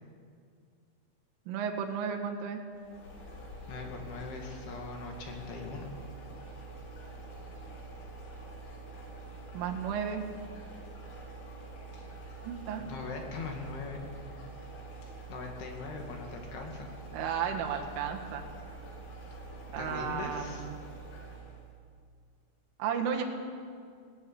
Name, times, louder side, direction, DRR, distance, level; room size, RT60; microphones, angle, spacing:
voice 1, 1.5-2.6 9.5-10.2 12.4-12.9 17.1-18.5 19.7-20.8 22.8-23.2, right 7 dB, 80° right, 3 dB, 4.1 m, -33 dB
sound 1, 2.7-21.7, right 3 dB, 80° left, 6.2 m, -46 dB
voice 2, 3.7-5.9 12.8-14.4 15.3-16.9 19.8-20.7, left 4 dB, 60° left, 2 dB, 3.7 m, -41 dB
18.5 x 17.5 x 8.6 m, 2.2 s
omnidirectional pair, 5.7 m